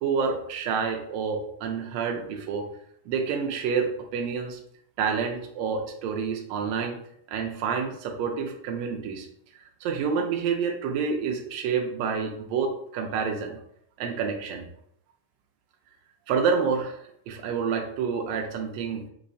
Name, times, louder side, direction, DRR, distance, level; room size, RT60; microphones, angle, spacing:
voice 1, 0.0-2.7 3.1-4.6 5.0-7.0 7.3-9.3 9.8-13.6 14.0-14.7 16.3-17.0 17.3-19.0, right 6 dB, 80° right, 2 dB, 1.5 m, -28 dB
5.2 x 2.0 x 2.6 m, 0.70 s
omnidirectional pair, 3.5 m